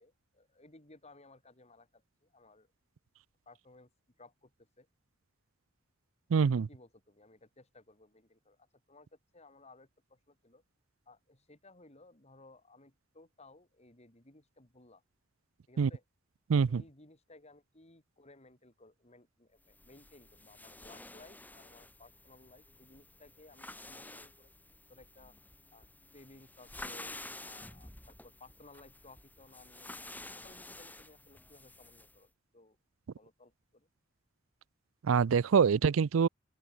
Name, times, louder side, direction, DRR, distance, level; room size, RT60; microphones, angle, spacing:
voice 1, 0.0-2.7 3.5-3.9 4.2-4.9 6.4-10.6 11.1-15.0 15.7-16.0 16.7-24.5 24.9-25.4 25.7-30.1 30.3-32.8 33.2-33.9, left 2 dB, 35° left, 3.8 m, -59 dB
voice 2, 6.3-6.7 15.8-15.9 16.5-16.8 35.0-36.3, right 6 dB, 90° right, 0.4 m, -25 dB
sound 1, 19.7-32.2, left 2 dB, 10° left, 4.7 m, -50 dB
open air
head